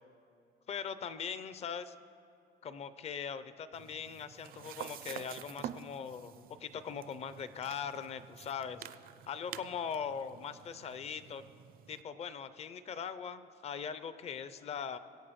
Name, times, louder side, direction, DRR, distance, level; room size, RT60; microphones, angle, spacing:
voice 1, 0.7-1.9 2.6-8.9 9.3-11.4 11.9-15.0, left 7 dB, 35° left, 12 dB, 0.5 m, -41 dB
sound 1, 3.7-12.0, right 10 dB, 55° right, 0.5 m, -49 dB
23.5 x 8.0 x 3.1 m, 2.6 s
cardioid pair, 135°, 18 cm